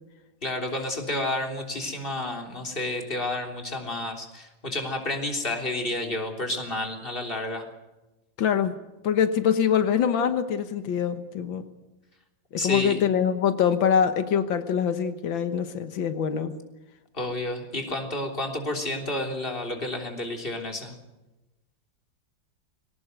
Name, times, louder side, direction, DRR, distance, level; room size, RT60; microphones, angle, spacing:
voice 1, 0.4-7.7 12.6-13.0 17.1-20.9, left 2 dB, 25° left, 3 dB, 3.6 m, -30 dB
voice 2, 8.4-8.7 9.0-11.6 12.5-16.5, left 8 dB, 90° left, 9 dB, 2.0 m, -24 dB
21.5 x 18.5 x 8.0 m, 1.0 s
omnidirectional pair, 2.1 m